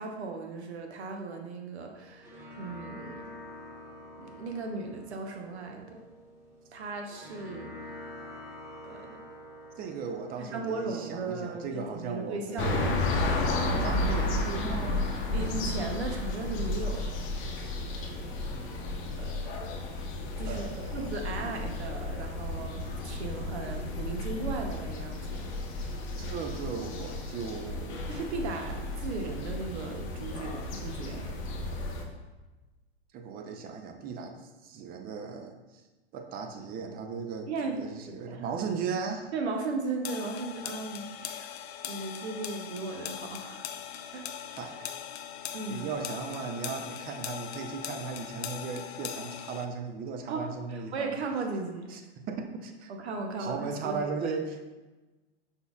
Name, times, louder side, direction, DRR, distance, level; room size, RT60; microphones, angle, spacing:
voice 1, 0.0-3.3 4.2-6.0 6.7-7.7 8.8-9.2 10.5-12.8 15.3-17.0 19.2-19.7 20.4-20.6 20.9-25.5 28.1-31.3 37.5-37.8 38.1-38.4 39.3-41.6 41.8-43.7 44.1-44.3 45.5-45.9 50.3-51.9 52.9-54.3, right 3 dB, 75° right, 3 dB, 0.9 m, -36 dB
sound 1, 1.9-12.9, left 1 dB, 5° right, 1.3 m, -48 dB
voice 2, 9.8-13.0 13.8-15.1 20.5-21.2 26.2-28.1 33.1-34.3 34.6-35.6 36.1-37.5 37.8-39.3 44.6-44.9 45.7-51.1 51.9-52.0 52.3-52.9 53.4-54.7, right 5 dB, 30° right, 5 dB, 0.5 m, -37 dB
sound 2, 12.6-32.0, left 2 dB, 35° left, 0.8 m, -33 dB
sound 3, 40.0-49.7, left 9 dB, 65° left, 0.5 m, -40 dB
5.4 x 4.0 x 2.4 m, 1.2 s
hypercardioid pair, 105°, 33 cm